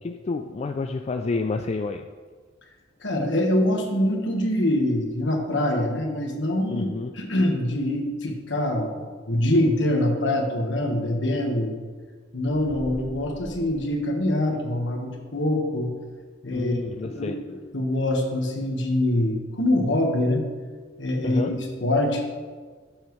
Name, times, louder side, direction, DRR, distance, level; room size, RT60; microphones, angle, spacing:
voice 1, 0.0-2.1 6.7-7.2 16.5-17.4 21.2-21.6, left 3 dB, 35° left, 6 dB, 0.3 m, -29 dB
voice 2, 3.0-6.9 7.2-11.7 12.3-15.9 16.4-16.8 17.0-20.4 21.0-22.2, left 1 dB, 65° left, 2 dB, 1.4 m, -24 dB
sound 1, 12.5-14.8, equal, 5° left, 1.5 m, -43 dB
12.5 x 7.3 x 3.1 m, 1.5 s
head